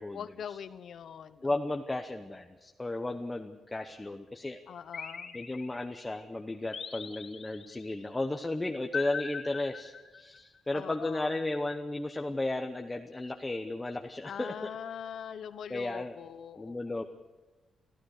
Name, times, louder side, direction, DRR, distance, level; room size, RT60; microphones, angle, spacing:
voice 1, 0.1-1.6 4.7-5.4 10.7-11.3 14.2-17.0, left 8 dB, 65° left, 13 dB, 1.0 m, -42 dB
voice 2, 1.4-4.6 5.3-14.7 15.7-16.1 16.6-17.0, left 2 dB, 15° left, 4 dB, 1.0 m, -34 dB
sound 1, 4.9-6.1 6.7-7.9 8.9-10.4, left 5 dB, 45° left, 2.3 m, -40 dB
26.0 x 15.0 x 6.6 m, 1.2 s
wide cardioid pair, 140°, 0 cm